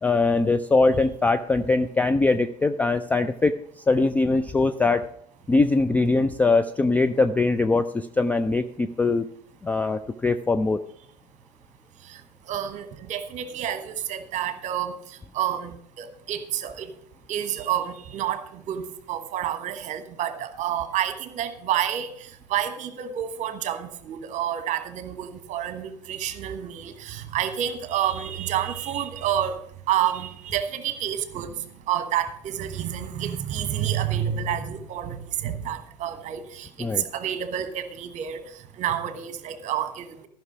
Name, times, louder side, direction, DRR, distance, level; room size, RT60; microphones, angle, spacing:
voice 1, 0.0-3.6 3.9-5.1 5.5-9.2 9.6-10.8 36.8-37.0, left 3 dB, 5° left, 9 dB, 0.3 m, -22 dB
voice 2, 12.5-16.9 17.3-29.6 29.9-31.5 31.9-38.4 38.8-40.3, right 10 dB, 35° right, 10 dB, 1.2 m, -29 dB
14.0 x 5.8 x 6.0 m, 0.70 s
figure-of-eight pair, 75°, 21 cm